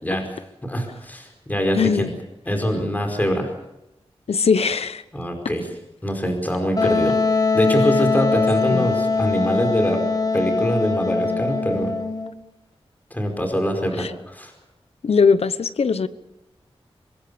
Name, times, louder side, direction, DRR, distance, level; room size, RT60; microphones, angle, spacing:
voice 1, 0.6-2.1 2.5-3.5 5.1-5.7 6.0-7.1 7.5-10.0 10.3-11.9 13.1-14.5, equal, 15° left, 4 dB, 4.9 m, -23 dB
voice 2, 1.7-2.1 4.3-5.0 8.7-8.9 14.0-14.1 15.0-16.1, left 5 dB, 85° left, 13 dB, 1.0 m, -20 dB
Wind instrument woodwind instrument, 6.8-12.3, left 4 dB, 40° left, 1.9 m, -22 dB
24.5 x 21.0 x 7.0 m, 0.88 s
wide cardioid pair, 110°, 10 cm